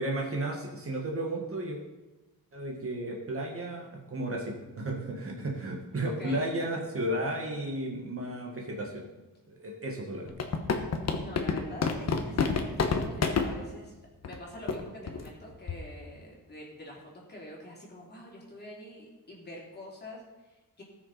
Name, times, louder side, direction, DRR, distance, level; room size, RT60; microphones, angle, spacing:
voice 1, 0.0-1.8 2.5-9.1 9.5-10.4, right 1 dB, 40° right, -1 dB, 1.8 m, -33 dB
voice 2, 6.0-6.6 11.1-13.9 14.2-17.0 17.3-20.8, left 1 dB, 30° left, -3 dB, 3.0 m, -45 dB
sound 1, 10.3-13.5 14.2-14.4 14.7-14.8 15.1-15.3 15.7-15.9, left 5 dB, 45° left, 1.1 m, -27 dB
19.0 x 6.4 x 4.2 m, 1.1 s
wide cardioid pair, 180°, 35 cm